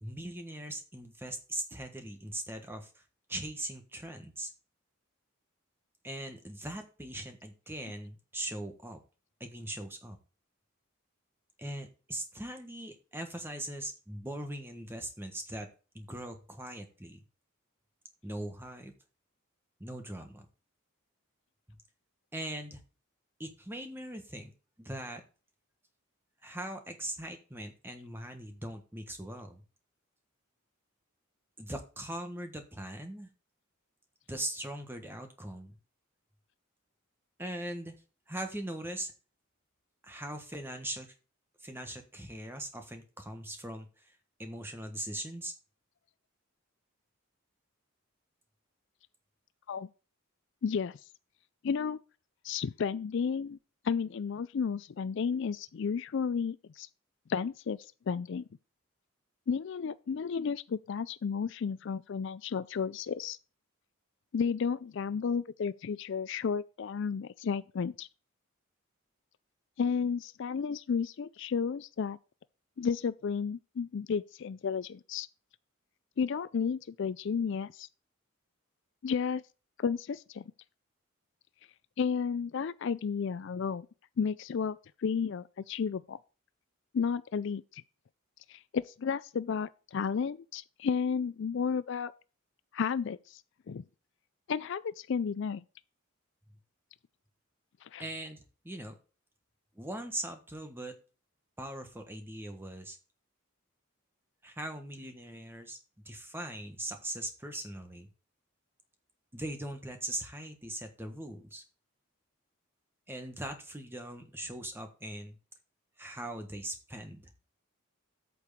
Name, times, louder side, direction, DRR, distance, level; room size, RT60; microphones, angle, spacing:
voice 1, 0.0-3.0 3.3-4.5 6.0-9.0 9.4-10.2 11.6-15.7 15.9-17.2 18.2-18.9 19.8-20.5 21.7-21.8 22.3-22.8 23.4-24.5 24.8-25.2 26.4-29.6 31.6-33.3 34.3-35.8 37.4-37.9 38.3-39.1 40.0-41.1 41.6-44.1 44.4-45.5 98.0-98.9 99.7-100.9 101.6-103.0 104.4-105.8 106.0-108.1 109.3-111.6 113.1-115.4 116.0-117.3, right 1 dB, 10° right, 1.4 m, -40 dB
voice 2, 50.6-51.0 51.6-52.0 52.4-53.6 53.8-56.9 57.3-57.8 58.1-58.4 59.5-63.4 64.3-68.1 69.8-72.2 72.8-75.3 76.2-77.9 79.0-79.4 79.8-80.4 82.0-83.9 84.2-86.2 86.9-87.8 88.5-92.1 92.7-93.4 93.7-93.8 94.5-95.6 97.8-98.0, left 6 dB, 55° left, 0.4 m, -32 dB
8.6 x 4.6 x 6.7 m
head